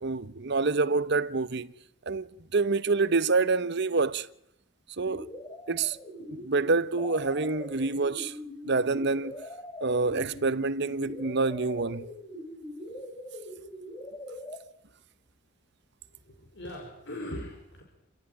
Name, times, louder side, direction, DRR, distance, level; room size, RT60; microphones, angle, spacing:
voice 1, 0.0-1.7 2.1-4.3 5.0-5.3 5.7-6.0 6.3-8.4 8.6-9.4 9.8-12.1, right 3 dB, 60° right, 0.9 m, -27 dB
sound 1, 5.0-14.6, left 1 dB, 20° left, 3.5 m, -42 dB
voice 2, 16.1-17.8, left 1 dB, 65° left, 5.2 m, -40 dB
29.0 x 16.0 x 9.9 m
head